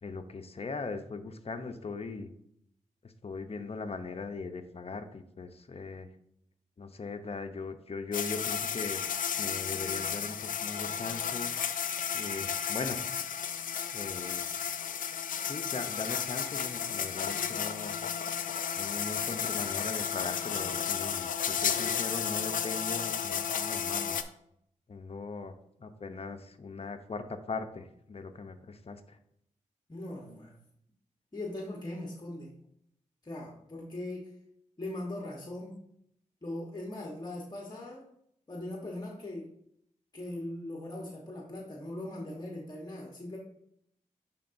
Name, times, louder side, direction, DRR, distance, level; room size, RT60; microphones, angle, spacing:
voice 1, 0.0-2.3 3.2-6.1 6.8-9.0 9.4-11.5 12.1-13.0 13.9-14.4 15.4-18.0 18.8-24.2 24.9-25.5 25.8-29.2, left 4 dB, 50° left, 8 dB, 0.7 m, -39 dB
sound 1, 8.1-24.2, left 8 dB, 85° left, 0.4 m, -33 dB
voice 2, 29.9-30.6 31.3-32.6 33.2-34.3 34.8-35.8 36.4-38.0 38.5-39.5 40.1-43.4, left 1 dB, 30° left, -2 dB, 1.2 m, -40 dB
10.0 x 3.7 x 2.6 m, 0.72 s
cardioid pair, 60°, 14 cm